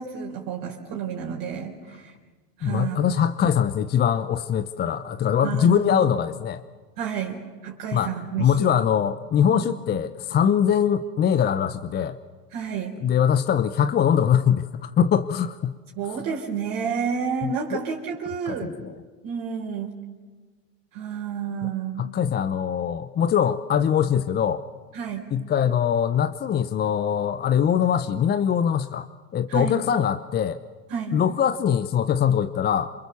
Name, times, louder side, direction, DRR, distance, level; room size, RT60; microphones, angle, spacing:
voice 1, 0.0-2.1 2.6-3.3 5.4-5.9 7.0-8.7 9.5-9.7 12.5-13.0 16.0-18.7 19.2-19.9 20.9-22.1 24.9-25.3 29.5-29.8 30.9-31.2, right 7 dB, 40° right, -1 dB, 4.2 m, -30 dB
voice 2, 2.6-6.6 7.9-12.2 13.0-15.7 17.4-17.8 18.5-18.9 21.6-21.7 22.0-24.6 25.3-29.1 29.3-30.6 31.1-32.9, left 8 dB, 20° left, 11 dB, 0.8 m, -22 dB
28.5 x 27.0 x 7.0 m, 1.4 s
hypercardioid pair, 105°, 49 cm